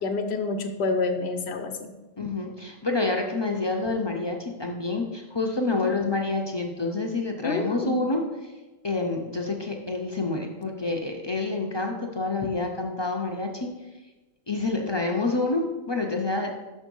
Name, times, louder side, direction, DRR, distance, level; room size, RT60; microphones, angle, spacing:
voice 1, 0.0-1.9 5.8-5.9 7.4-7.9, left 3 dB, 80° left, 6 dB, 1.0 m, -28 dB
voice 2, 2.2-8.5 8.8-13.7 14.5-16.5, left 3 dB, 30° left, 1 dB, 0.6 m, -28 dB
6.3 x 5.4 x 5.3 m, 1.1 s
omnidirectional pair, 1.1 m